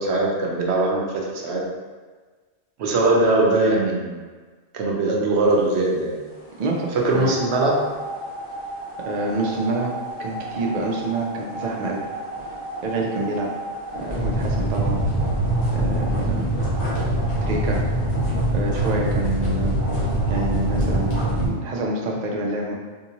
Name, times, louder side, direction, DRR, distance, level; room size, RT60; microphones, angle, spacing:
voice 1, 0.0-1.6 2.8-4.2 4.7-6.2 6.9-7.8, right 2 dB, 75° right, -2 dB, 0.9 m, -21 dB
voice 2, 6.6-7.4 9.1-9.9 10.2-12.0 12.8-13.5 13.9-15.0 15.7-16.5 17.4-17.8 18.5-22.7, right 2 dB, 50° right, -1 dB, 0.5 m, -27 dB
sound 1, 7.1-21.5, right 1 dB, 55° left, 1.4 m, -25 dB
3.6 x 2.7 x 2.9 m, 1.4 s
omnidirectional pair, 1.1 m